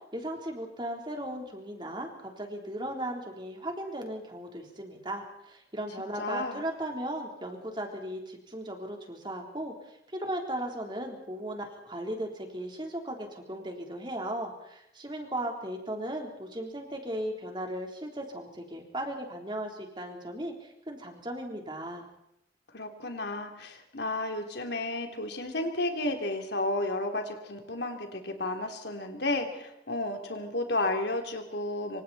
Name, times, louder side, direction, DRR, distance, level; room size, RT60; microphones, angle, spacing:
voice 1, 0.1-22.1, right 1 dB, 25° right, 2 dB, 3.7 m, -37 dB
voice 2, 6.2-6.7 22.7-32.0, left 2 dB, 75° left, 4 dB, 3.3 m, -32 dB
26.5 x 25.5 x 4.3 m, 0.80 s
head